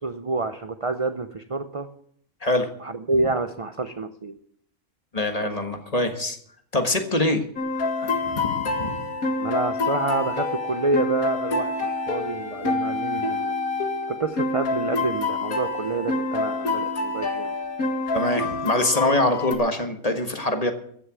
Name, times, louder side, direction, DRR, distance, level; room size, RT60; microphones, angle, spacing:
voice 1, 0.0-1.9 2.8-4.4 5.4-5.5 9.4-13.6 14.1-17.5, right 3 dB, 35° right, 9 dB, 0.5 m, -28 dB
voice 2, 5.1-6.4 6.7-7.4 8.0-9.0 18.1-20.7, left 1 dB, 25° left, 6 dB, 1.5 m, -24 dB
sound 1, 7.6-19.5, left 3 dB, 80° left, 2.2 m, -27 dB
15.0 x 6.8 x 9.2 m, 0.65 s
omnidirectional pair, 1.5 m